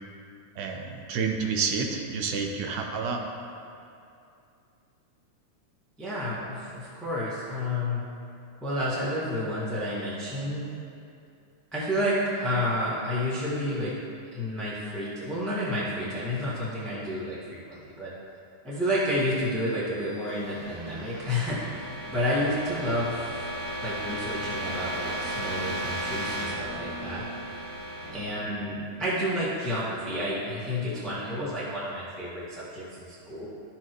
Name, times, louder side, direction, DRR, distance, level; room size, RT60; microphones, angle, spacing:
voice 1, 0.6-3.2, right 5 dB, 90° right, 2 dB, 2.4 m, -29 dB
voice 2, 6.0-8.0 8.6-10.6 11.7-13.9 14.3-17.4 17.7-18.1 18.6-21.6 22.1-23.2 23.8-27.2 28.1-33.5, left 1 dB, ahead, -8 dB, 0.6 m, -30 dB
sound 1, 19.6-29.4, right 1 dB, 65° right, 2.7 m, -35 dB
13.0 x 6.1 x 3.0 m, 2.6 s
omnidirectional pair, 3.6 m